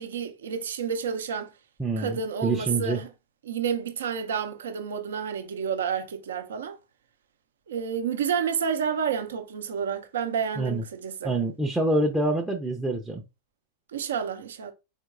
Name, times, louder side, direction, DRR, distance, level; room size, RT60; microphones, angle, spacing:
voice 1, 0.0-1.5 2.0-3.1 3.4-6.8 7.7-11.3 13.9-14.7, right 7 dB, 65° right, 0.6 m, -30 dB
voice 2, 1.8-3.0 10.6-10.8 11.2-13.2, right 2 dB, 5° right, 0.5 m, -26 dB
4.4 x 3.6 x 2.4 m
figure-of-eight pair, 90°, 0 cm